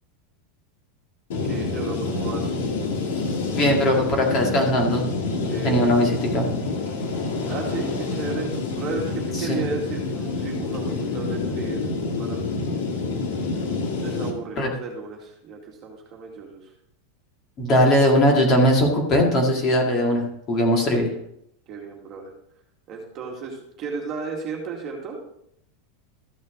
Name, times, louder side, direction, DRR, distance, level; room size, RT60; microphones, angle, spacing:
sound 1, 1.3-14.3, left 3 dB, 85° left, 1.9 m, -27 dB
voice 1, 1.4-2.6 5.4-6.1 7.4-12.4 14.0-16.6 21.7-22.3 22.9-25.2, right 5 dB, 30° right, 0 dB, 2.0 m, -34 dB
voice 2, 3.5-5.1 5.6-6.5 9.4-9.6 14.6-14.7 17.6-21.1, equal, 25° left, 0 dB, 2.1 m, -20 dB
13.5 x 6.2 x 3.8 m, 0.73 s
supercardioid pair, 165°, 0 cm